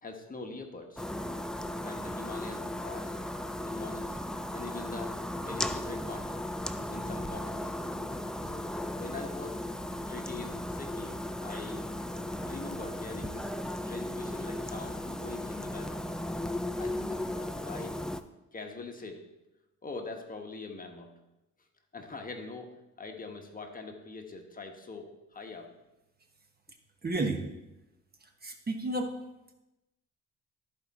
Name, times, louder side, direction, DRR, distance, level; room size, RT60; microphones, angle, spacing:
voice 1, 0.0-1.0 1.8-3.1 3.6-4.2 4.5-5.2 5.4-6.4 6.7-7.7 8.4-9.6 10.1-11.8 12.4-16.0 16.8-18.0 18.5-19.2 19.8-21.1 21.9-25.7, left 3 dB, 30° left, 4 dB, 1.2 m, -43 dB
sound 1, 1.0-18.2, left 1 dB, ahead, 0.4 m, -36 dB
voice 2, 27.0-27.4 28.2-29.2, right 2 dB, 30° right, 4 dB, 1.2 m, -32 dB
14.0 x 4.6 x 4.2 m, 0.96 s
cardioid pair, 90°, 30 cm